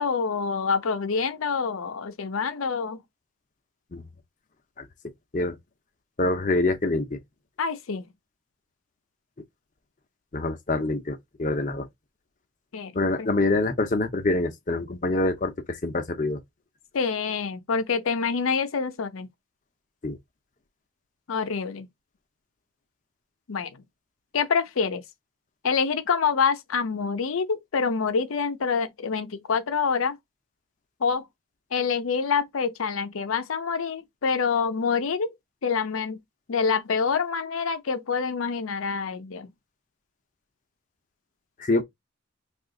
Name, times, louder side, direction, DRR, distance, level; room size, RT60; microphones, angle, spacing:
voice 1, 0.0-3.0 7.6-8.1 12.7-12.9 13.2-13.3 16.9-19.3 21.3-21.9 23.5-23.7 24.3-25.0 25.6-30.2 31.0-31.3 31.7-35.3 35.6-36.2 36.5-39.5, left 5 dB, 85° left, 0.6 m, -26 dB
voice 2, 6.2-7.2 10.3-11.9 12.9-16.4 20.0-20.2 41.6-41.8, left 2 dB, 40° left, 0.6 m, -25 dB
2.7 x 2.4 x 3.6 m
head